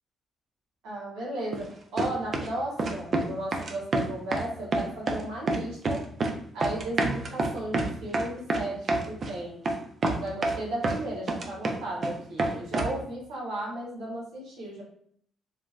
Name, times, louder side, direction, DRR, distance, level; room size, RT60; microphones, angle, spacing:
voice 1, 0.8-6.0 6.5-9.6 10.2-14.8, right 1 dB, 90° right, -4 dB, 1.2 m, -35 dB
sound 1, 1.5-1.7 2.0-2.5 2.8-3.3 3.5-4.5 4.7-5.2 5.5-6.3 6.6-9.3 9.6-9.8 10.0-11.0 11.3-12.1 12.4-13.0, right 2 dB, 45° right, 0.4 m, -27 dB
3.1 x 2.1 x 2.4 m, 0.63 s
cardioid pair, 90°, 0 cm